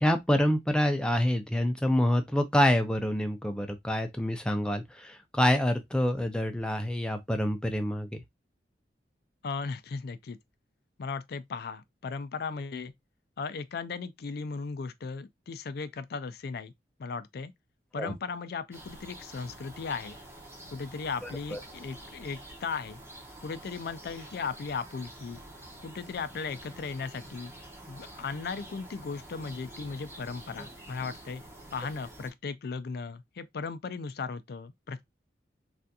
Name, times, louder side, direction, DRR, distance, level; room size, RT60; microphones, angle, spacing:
voice 1, 0.0-8.2 18.0-18.1 21.2-21.6, equal, 5° left, 0.5 m, -27 dB
voice 2, 9.4-10.4 11.0-12.9 13.4-16.7 17.0-17.5 17.9-20.2 20.7-23.0 23.4-25.4 25.8-27.5 27.9-31.4 31.7-35.0, left 5 dB, 60° left, 0.4 m, -37 dB
sound 1, 18.7-32.3, right 1 dB, 15° right, 0.8 m, -48 dB
3.4 x 2.4 x 2.7 m
head